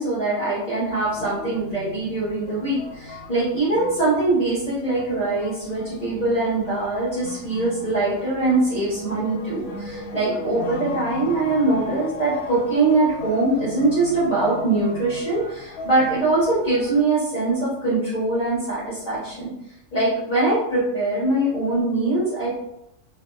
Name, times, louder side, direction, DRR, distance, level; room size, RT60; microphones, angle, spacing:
voice 1, 0.0-19.5 19.9-22.6, right 2 dB, 35° left, -9 dB, 0.8 m, -22 dB
sound 1, 0.9-17.0, left 2 dB, 80° left, 1.1 m, -38 dB
2.6 x 2.6 x 2.3 m, 0.82 s
omnidirectional pair, 1.5 m